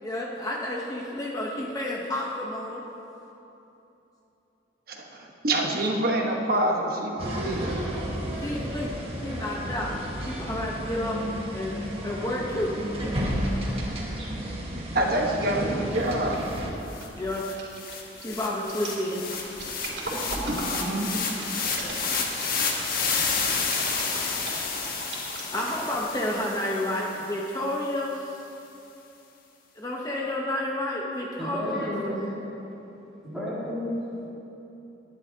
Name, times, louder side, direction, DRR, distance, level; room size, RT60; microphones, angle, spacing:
voice 1, 0.0-2.8 8.3-12.8 17.2-17.6 18.1-19.2 25.5-28.3 29.8-31.9, left 1 dB, 20° left, -3 dB, 1.0 m, -31 dB
voice 2, 4.9-7.8 14.9-16.4 20.4-21.1, right 1 dB, 55° right, 0 dB, 1.3 m, -27 dB
sound 1, 7.2-16.7, equal, 35° right, 1.6 m, -32 dB
sound 2, 16.3-16.6 16.9-22.8 23.3-26.0 26.4-26.5, right 2 dB, 80° right, 3.0 m, -37 dB
sound 3, 16.6-16.7 16.9-27.3, left 5 dB, 55° left, 1.3 m, -30 dB
voice 3, 31.4-32.3 33.2-33.9, equal, ahead, -11 dB, 2.4 m, -31 dB
19.5 x 11.0 x 2.9 m, 3.0 s
head